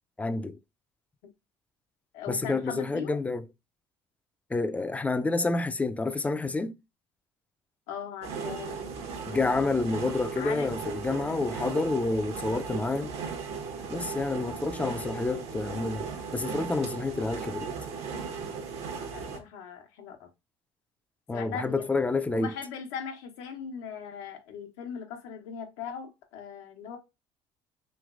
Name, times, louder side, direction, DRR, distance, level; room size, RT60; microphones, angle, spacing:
voice 1, 0.2-0.6 2.3-3.4 4.5-6.7 9.3-13.1 13.9-17.7 21.3-22.5, left 3 dB, 10° left, 0.4 m, -29 dB
voice 2, 2.1-3.2 7.9-8.8 10.4-10.7 19.1-20.3 21.3-21.9 22.3-27.0, left 7 dB, 85° left, 0.9 m, -39 dB
sound 1, 8.2-19.4, right 5 dB, 70° right, 0.9 m, -37 dB
3.2 x 3.0 x 2.3 m
supercardioid pair, 95°, 11 cm